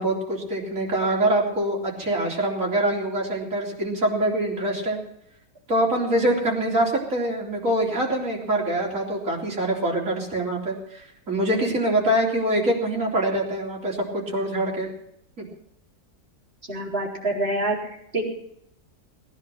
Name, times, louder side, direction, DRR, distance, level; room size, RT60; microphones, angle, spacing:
voice 1, 0.0-5.0 5.7-14.9 15.4-15.5, right 1 dB, 55° right, -2 dB, 4.2 m, -24 dB
voice 2, 16.7-18.3, right 2 dB, 40° right, -2 dB, 4.2 m, -27 dB
19.0 x 10.5 x 5.8 m, 0.74 s
omnidirectional pair, 1.7 m